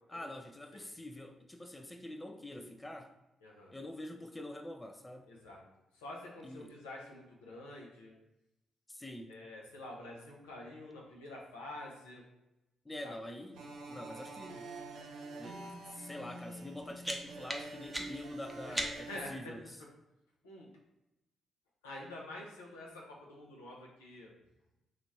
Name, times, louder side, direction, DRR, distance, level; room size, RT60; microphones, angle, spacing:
voice 1, 0.1-3.2 3.7-5.3 6.4-6.8 8.9-9.4 12.9-14.7 15.4-19.6, left 1 dB, 20° left, 5 dB, 0.4 m, -46 dB
voice 2, 3.4-3.7 5.3-5.6 5.9-8.1 9.3-12.2 13.0-13.2 18.7-19.5 20.4-20.7 21.8-24.3, left 1 dB, 80° left, -2 dB, 0.7 m, -47 dB
sound 1, 13.5-19.2, right 2 dB, 70° right, 0.6 m, -47 dB
sound 2, 16.6-19.3, equal, 5° right, 0.7 m, -41 dB
3.0 x 2.5 x 4.1 m, 0.93 s
hypercardioid pair, 40°, 0 cm